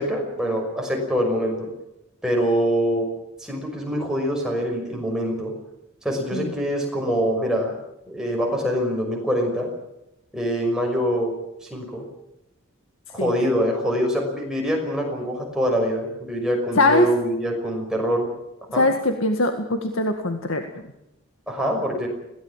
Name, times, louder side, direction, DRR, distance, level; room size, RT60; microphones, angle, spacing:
voice 1, 0.0-1.7 2.2-3.1 3.4-5.5 6.0-7.7 8.1-9.7 10.3-11.3 11.6-12.0 13.1-18.3 18.7-18.9 21.5-22.1, equal, 5° right, 0 dB, 5.9 m, -24 dB
voice 2, 16.8-17.1 18.7-20.6, left 2 dB, 70° left, 5 dB, 1.9 m, -21 dB
21.5 x 18.0 x 7.5 m, 0.88 s
head